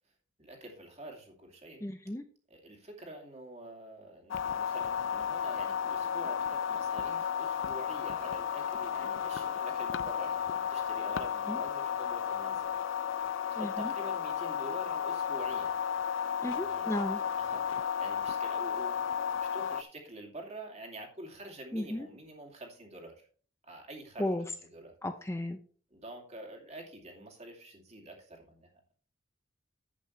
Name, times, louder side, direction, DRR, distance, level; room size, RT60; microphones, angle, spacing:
voice 1, 0.4-1.8 2.5-12.7 13.5-15.7 16.5-23.2 23.6-24.9 25.9-28.9, right 1 dB, 35° right, 1 dB, 2.5 m, -47 dB
voice 2, 1.8-2.2 11.5-11.6 13.6-13.9 16.4-17.2 21.7-22.1 24.2-24.4 25.0-25.6, left 1 dB, 15° left, 7 dB, 0.6 m, -34 dB
sound 1, 4.3-19.8, left 8 dB, 75° left, 0.5 m, -33 dB
11.0 x 8.4 x 3.2 m, 0.43 s
head